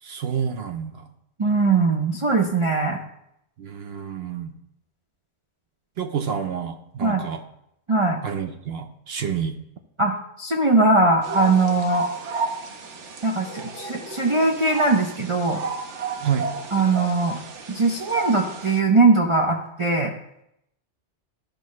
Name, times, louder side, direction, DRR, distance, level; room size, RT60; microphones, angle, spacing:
voice 1, 0.0-1.1 3.6-4.5 6.0-7.4 8.2-9.6 16.2-16.5, right 7 dB, 65° right, 6 dB, 0.9 m, -29 dB
voice 2, 1.4-3.0 7.0-7.3 7.9-8.2 10.0-12.1 13.2-15.6 16.7-17.4 17.7-20.1, right 3 dB, 35° right, -1 dB, 0.6 m, -20 dB
sound 1, 11.2-18.8, right 4 dB, 90° right, 1.2 m, -33 dB
13.0 x 5.3 x 3.1 m, 0.77 s
omnidirectional pair, 1.2 m